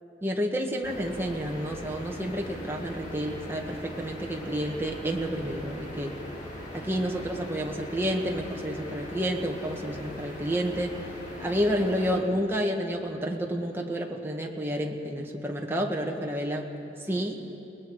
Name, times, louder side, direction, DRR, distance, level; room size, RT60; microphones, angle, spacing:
voice 1, 0.2-6.1 6.7-11.0 11.4-16.7 17.0-17.4, equal, 15° right, 1 dB, 1.6 m, -30 dB
sound 1, 0.8-12.2, equal, 45° left, 3.6 m, -40 dB
30.0 x 19.5 x 4.8 m, 2.9 s
head